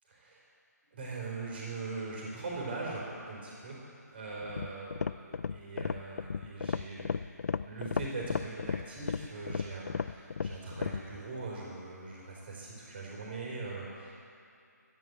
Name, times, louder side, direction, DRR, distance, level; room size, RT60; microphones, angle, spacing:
voice 1, 0.1-0.4 0.9-7.2 7.6-14.1, right 3 dB, 35° right, -3 dB, 4.2 m, -41 dB
sound 1, 4.4-11.1, left 5 dB, 60° left, 0.4 m, -35 dB
12.5 x 10.5 x 8.2 m, 2.5 s
hypercardioid pair, 170°, 10 cm